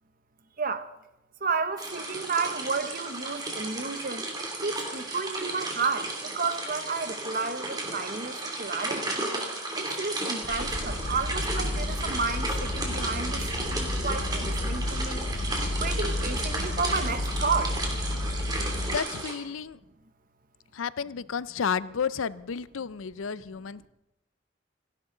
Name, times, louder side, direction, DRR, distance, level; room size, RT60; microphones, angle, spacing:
voice 1, 1.4-9.1 9.8-15.3 15.8-17.7, right 4 dB, 45° right, 0.9 m, -32 dB
sound 1, 1.8-19.3, right 2 dB, 20° right, 2.9 m, -34 dB
sound 2, 10.4-19.0, left 1 dB, 50° left, 0.7 m, -31 dB
voice 2, 18.8-19.8 20.7-23.9, left 6 dB, 85° left, 0.5 m, -32 dB
29.0 x 11.0 x 3.9 m
head